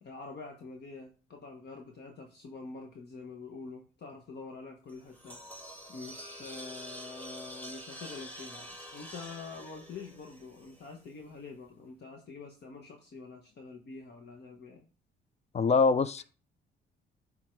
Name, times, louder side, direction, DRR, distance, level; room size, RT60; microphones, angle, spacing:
voice 1, 0.0-5.4 5.9-14.9, left 4 dB, 55° left, 1.3 m, -46 dB
sound 1, 4.9-11.2, equal, 10° left, 1.6 m, -47 dB
voice 2, 15.5-16.2, left 4 dB, 35° left, 0.5 m, -24 dB
8.4 x 3.7 x 4.6 m
cardioid pair, 90°, 20 cm